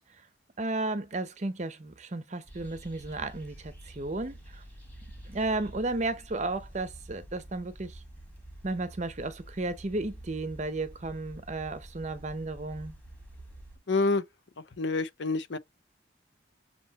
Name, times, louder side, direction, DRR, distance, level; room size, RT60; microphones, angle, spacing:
voice 1, 0.6-4.6 5.3-8.0 8.6-13.0, right 2 dB, 35° right, 0.7 m, -33 dB
sound 1, 2.5-13.8, right 1 dB, 10° left, 1.5 m, -48 dB
voice 2, 13.9-14.2 14.8-15.6, left 3 dB, 70° left, 0.7 m, -27 dB
6.6 x 2.8 x 2.9 m
head